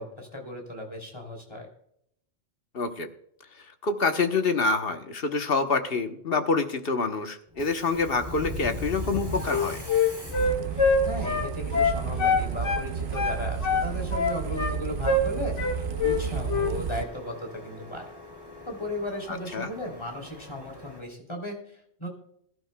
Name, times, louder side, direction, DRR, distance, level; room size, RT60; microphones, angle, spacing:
voice 1, 0.0-1.7 11.0-18.0 18.6-22.1, left 1 dB, 25° left, 2 dB, 3.1 m, -36 dB
voice 2, 2.7-3.1 3.8-9.8 19.3-19.7, left 4 dB, 55° left, 7 dB, 1.2 m, -26 dB
Subway metro underground, 7.5-21.0, left 1 dB, 20° right, 2.5 m, -41 dB
Wind instrument woodwind instrument, 9.4-12.9 13.1-14.8 15.0-15.3 15.6-16.2 16.5-16.7, left 4 dB, 85° left, 2.2 m, -24 dB
sound 1, 10.4-17.0, right 7 dB, 55° right, 0.8 m, -32 dB
21.5 x 11.5 x 2.2 m, 0.72 s
omnidirectional pair, 1.2 m